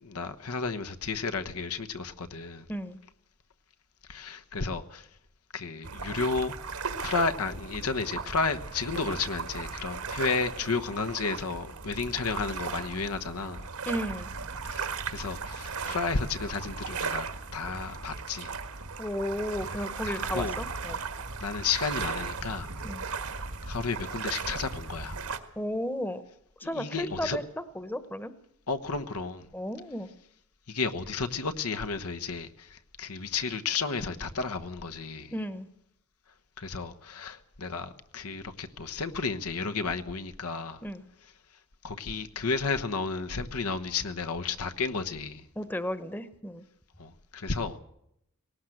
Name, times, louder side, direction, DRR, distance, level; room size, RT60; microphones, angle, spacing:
voice 1, 0.0-2.6 4.1-5.1 5.5-6.5 7.0-13.6 14.6-17.3 17.5-18.5 20.3-20.5 21.4-22.7 23.6-25.2 26.7-27.4 28.7-29.5 30.7-35.3 36.6-40.8 41.8-45.4 47.0-47.8, left 4 dB, 90° left, 1.2 m, -32 dB
sound 1, 5.8-25.4, right 4 dB, 85° right, 1.8 m, -37 dB
voice 2, 13.9-14.3 19.0-21.0 22.8-23.1 25.6-26.2 26.6-28.3 29.5-30.1 35.3-35.7 40.8-41.0 45.6-46.6, equal, 10° left, 0.9 m, -34 dB
19.0 x 18.0 x 7.8 m
head